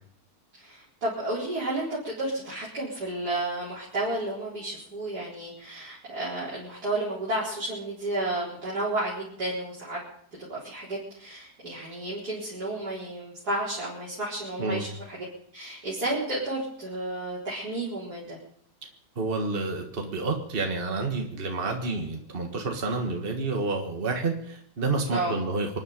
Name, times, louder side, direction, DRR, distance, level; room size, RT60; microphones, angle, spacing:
voice 1, 0.5-10.0 10.5-15.2 15.5-18.4 25.1-25.4, right 1 dB, 85° right, -9 dB, 4.9 m, -32 dB
voice 2, 19.2-25.8, right 3 dB, 35° right, 2 dB, 1.8 m, -29 dB
25.5 x 10.5 x 5.2 m, 0.66 s
omnidirectional pair, 1.7 m